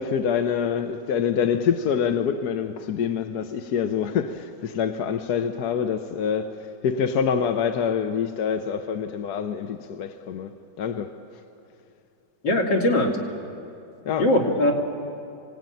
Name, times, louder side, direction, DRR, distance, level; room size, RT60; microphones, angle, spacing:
voice 1, 0.0-11.4 14.0-14.3, left 7 dB, 65° left, 1.3 m, -26 dB
voice 2, 12.4-13.1 14.2-14.7, left 1 dB, 85° left, 3.3 m, -20 dB
26.5 x 18.0 x 9.2 m
omnidirectional pair, 1.9 m